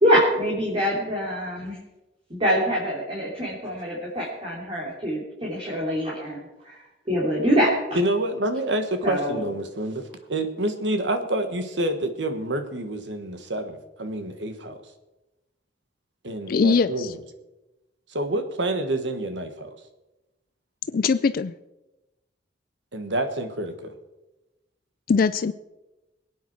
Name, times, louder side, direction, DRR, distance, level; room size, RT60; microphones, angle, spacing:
voice 1, 0.0-1.8 2.3-6.8 7.1-7.7 9.0-9.4, equal, 30° right, -5 dB, 3.2 m, -24 dB
voice 2, 7.9-14.8 16.2-17.2 18.1-19.8 22.9-23.9, right 1 dB, 80° right, 8 dB, 1.5 m, -28 dB
voice 3, 16.5-17.1 20.9-21.5 25.1-25.5, left 5 dB, 55° left, 13 dB, 0.4 m, -21 dB
22.0 x 9.3 x 4.6 m, 1.0 s
head